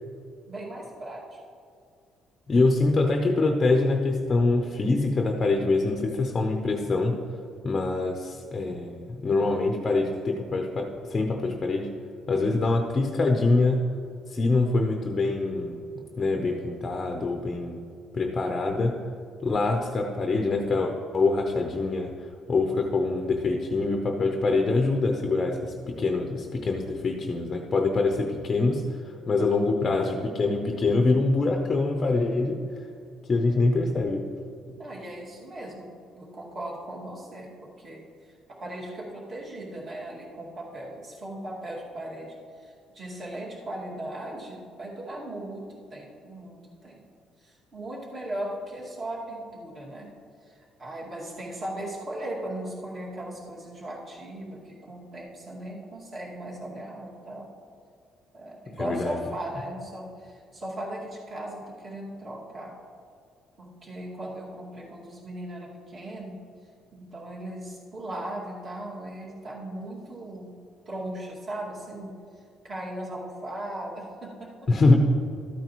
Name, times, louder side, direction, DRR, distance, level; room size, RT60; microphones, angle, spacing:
voice 1, 0.5-1.4 34.8-37.5 37.8-47.0 47.4-50.1 50.4-57.5 58.3-62.8 63.6-66.4 66.9-70.5 70.9-72.2 72.6-74.7, right 1 dB, 35° right, -4 dB, 2.2 m, -38 dB
voice 2, 2.5-7.2 7.6-11.9 12.3-13.8 14.3-17.8 18.1-19.0 19.4-22.1 22.5-32.6 33.3-34.2 58.8-59.2 74.7-75.0, left 3 dB, 25° left, 3 dB, 0.7 m, -24 dB
13.0 x 9.0 x 3.1 m, 2.3 s
cardioid pair, 140°, 0 cm